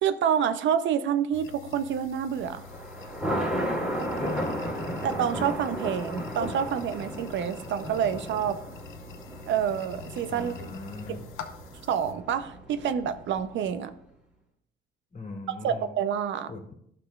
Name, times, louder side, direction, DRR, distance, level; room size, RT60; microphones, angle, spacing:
voice 1, 0.0-2.6 5.0-8.6 9.5-10.7 11.9-13.9 15.5-16.5, right 8 dB, 70° right, 12 dB, 0.5 m, -28 dB
sound 1, 1.3-12.1, left 7 dB, 85° left, 0.7 m, -46 dB
Thunder, 2.4-13.7, equal, 5° right, 2.5 m, -35 dB
voice 2, 4.2-4.6 10.3-11.2 15.1-15.9 16.5-16.7, left 3 dB, 40° left, 2 dB, 2.0 m, -39 dB
11.5 x 6.0 x 2.3 m, 0.71 s
cardioid pair, 90°, 20 cm